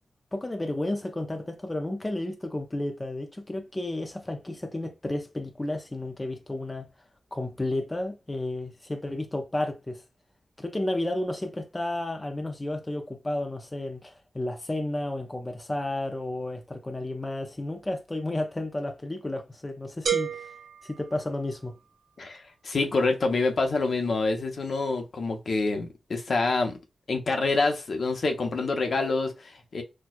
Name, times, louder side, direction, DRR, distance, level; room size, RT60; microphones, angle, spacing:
voice 1, 0.3-6.9 7.3-10.0 10.6-20.5 20.8-21.7, left 1 dB, 20° left, 0.5 m, -32 dB
sound 1, 20.1-21.9, right 7 dB, 85° right, 0.8 m, -32 dB
voice 2, 22.2-26.8 27.1-29.8, left 3 dB, 60° left, 0.7 m, -27 dB
4.2 x 2.3 x 2.3 m
wide cardioid pair, 80°, 0 cm